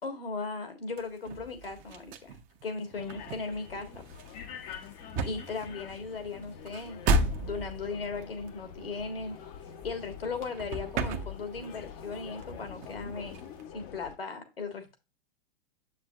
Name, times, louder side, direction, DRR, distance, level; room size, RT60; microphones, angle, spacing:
voice 1, 0.0-2.4 2.6-4.0 5.2-7.0 7.4-9.4 9.8-13.4 13.7-15.0, left 4 dB, 75° left, 1.8 m, -37 dB
sound 1, 1.0-10.3 10.5-11.8 12.1-13.6, right 2 dB, 25° right, 0.8 m, -34 dB
sound 2, 2.9-14.2, left 8 dB, 30° left, 0.7 m, -46 dB
7.5 x 6.7 x 2.4 m
figure-of-eight pair, 100°, 29 cm